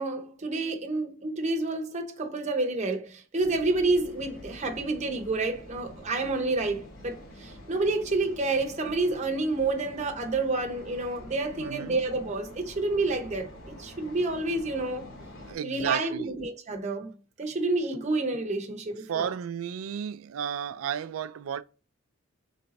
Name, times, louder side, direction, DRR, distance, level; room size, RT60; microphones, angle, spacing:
voice 1, 0.0-15.1 15.6-17.1 17.4-19.3, right 2 dB, 35° right, 0.7 m, -29 dB
sound 1, 3.4-15.5, equal, 80° left, 2.1 m, -47 dB
voice 2, 11.6-12.0 15.5-16.4 19.1-21.6, right 8 dB, 80° right, 0.4 m, -33 dB
4.0 x 3.3 x 4.0 m
head